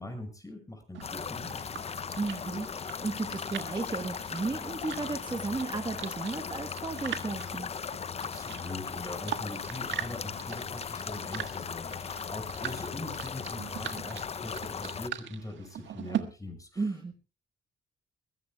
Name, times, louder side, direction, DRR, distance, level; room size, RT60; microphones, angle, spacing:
voice 1, 0.0-1.8 8.2-17.1, left 1 dB, 15° left, 6 dB, 5.9 m, -42 dB
sound 1, 0.9-16.2, right 10 dB, 70° right, 1.5 m, -42 dB
sound 2, 1.0-15.1, left 6 dB, 30° left, 0.6 m, -38 dB
voice 2, 2.2-7.7 16.8-17.1, right 3 dB, 20° right, 5 dB, 1.3 m, -34 dB
22.5 x 15.5 x 2.3 m, 0.32 s
cardioid pair, 90°, 20 cm